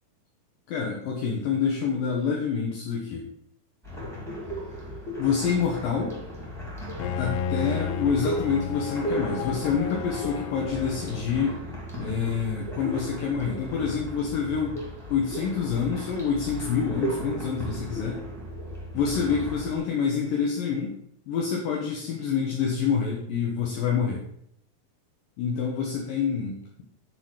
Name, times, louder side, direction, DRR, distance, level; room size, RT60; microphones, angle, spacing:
voice 1, 0.7-3.3 5.2-6.2 7.2-11.6 12.0-14.8 15.1-18.2 18.9-21.0 21.3-24.2 25.4-26.8, left 6 dB, 70° left, -1 dB, 2.5 m, -27 dB
sound 1, 3.8-19.8, equal, ahead, 1.5 m, -36 dB
Bowed string instrument, 7.0-11.8, left 7 dB, 90° left, 2.6 m, -33 dB
10.0 x 4.0 x 6.4 m, 0.71 s
omnidirectional pair, 4.5 m